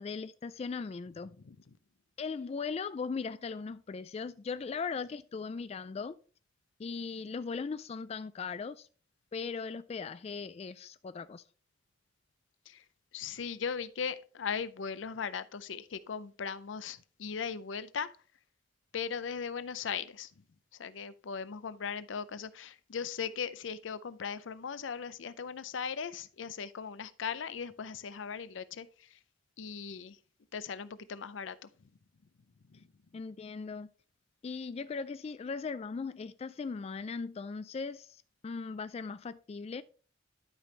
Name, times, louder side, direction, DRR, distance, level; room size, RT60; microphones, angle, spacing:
voice 1, 0.0-1.3 2.2-6.1 6.8-8.9 9.3-11.4 33.1-33.9 34.4-39.8, left 5 dB, 35° left, 0.3 m, -38 dB
voice 2, 1.4-1.8 12.7-12.8 13.1-18.1 18.9-20.4 20.7-29.2 29.6-30.2 30.5-31.7 32.7-32.8, left 6 dB, 85° left, 0.5 m, -38 dB
11.5 x 5.1 x 3.2 m
head